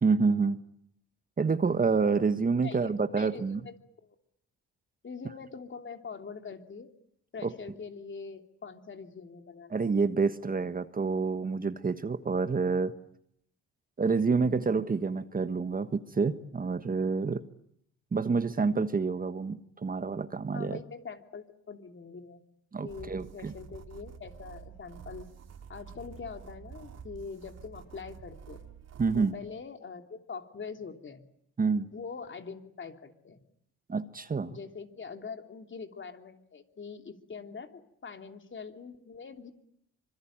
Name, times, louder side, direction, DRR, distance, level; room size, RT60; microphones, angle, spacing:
voice 1, 0.0-0.6 1.4-3.6 7.4-7.5 9.7-12.9 14.0-17.4 18.1-20.8 22.7-23.5 29.0-29.3 31.6-31.9 33.9-34.6, right 4 dB, 30° right, 11 dB, 1.4 m, -28 dB
voice 2, 2.6-3.7 4.0-4.1 5.0-6.9 7.3-9.7 14.4-14.6 20.5-22.4 22.8-25.3 25.7-28.6 29.1-31.3 31.9-33.4 34.5-39.5, left 5 dB, 40° left, 6 dB, 3.1 m, -43 dB
sound 1, 22.9-29.3, right 7 dB, 55° right, 3.3 m, -48 dB
25.5 x 23.5 x 8.9 m, 0.73 s
cardioid pair, 90°, 30 cm